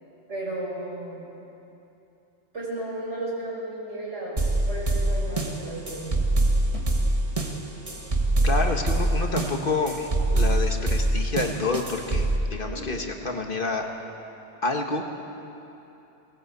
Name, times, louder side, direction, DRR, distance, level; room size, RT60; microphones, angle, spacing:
voice 1, 0.3-1.2 2.5-6.2 12.6-12.8, right 1 dB, 80° right, -4 dB, 5.9 m, -34 dB
sound 1, 4.4-12.4, right 1 dB, 30° right, 1.7 m, -24 dB
voice 2, 8.4-13.9 14.6-15.0, left 3 dB, 50° left, 3 dB, 1.7 m, -28 dB
19.0 x 18.5 x 8.1 m, 2.9 s
omnidirectional pair, 1.2 m